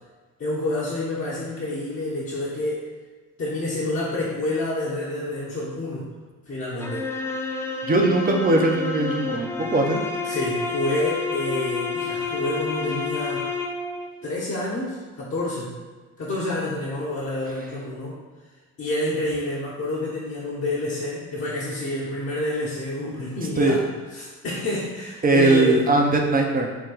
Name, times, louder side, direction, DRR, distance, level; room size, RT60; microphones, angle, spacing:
voice 1, 0.4-2.9 3.4-6.1 6.5-7.1 10.2-13.5 14.2-15.7 16.2-18.2 18.8-23.8 24.1-25.9, left 1 dB, 35° left, -6 dB, 1.0 m, -28 dB
sound 1, 6.8-14.1, left 4 dB, 5° left, 0.3 m, -29 dB
voice 2, 7.8-10.0 23.6-23.8 25.2-26.7, right 2 dB, 20° right, 2 dB, 0.7 m, -20 dB
4.6 x 2.2 x 3.9 m, 1.3 s
hypercardioid pair, 55°, 39 cm